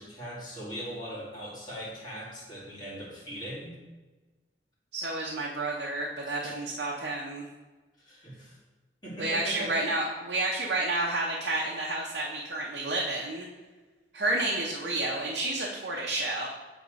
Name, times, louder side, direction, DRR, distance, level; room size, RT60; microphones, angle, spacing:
voice 1, 0.0-3.7 6.3-6.6 8.0-8.6 9.0-9.7, equal, 25° left, -7 dB, 2.3 m, -40 dB
voice 2, 4.9-7.4 9.2-13.5 14.1-16.5, right 2 dB, 75° right, -3 dB, 0.8 m, -30 dB
7.0 x 3.5 x 5.2 m, 1.3 s
head